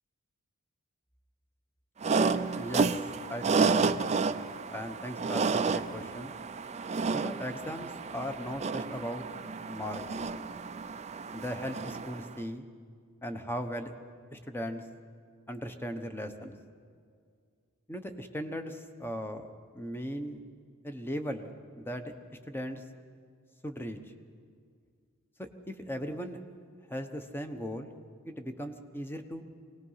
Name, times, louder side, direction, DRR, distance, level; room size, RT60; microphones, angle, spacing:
sound 1, 2.0-12.3, right 4 dB, 30° right, 0.5 m, -31 dB
voice 1, 2.5-3.0 3.3-4.3 4.7-6.4 7.1-9.2 9.7-10.0 11.3-12.7 13.2-13.9 14.3-14.8 15.5-16.6 17.9-20.4 20.8-22.0 22.5-22.8 23.6-24.0 25.4-26.4 26.9-27.9 28.3-29.4, equal, 10° left, 7 dB, 1.0 m, -38 dB
24.5 x 18.5 x 5.7 m, 2.2 s
head